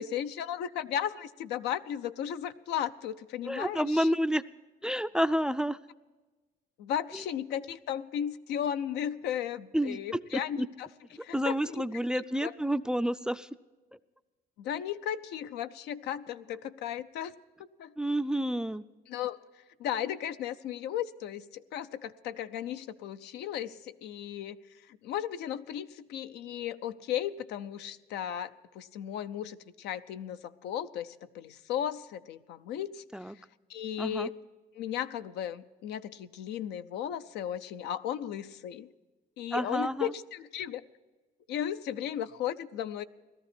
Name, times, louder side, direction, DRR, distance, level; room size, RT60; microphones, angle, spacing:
voice 1, 0.0-4.1 6.8-10.9 11.2-11.8 12.4-12.5 14.6-17.3 17.6-17.9 19.1-19.4 19.8-24.6 24.9-33.0 33.7-34.3 34.7-38.9 39.4-40.8 41.5-43.0, left 10 dB, 85° left, 11 dB, 0.6 m, -35 dB
voice 2, 3.4-4.4 4.8-5.8 7.1-7.2 9.7-10.7 11.2-13.5 18.0-18.8 33.1-33.3 34.0-34.3 39.5-40.1, equal, 5° right, 14 dB, 0.4 m, -30 dB
17.5 x 13.0 x 4.4 m, 1.2 s
cardioid pair, 110°, 17 cm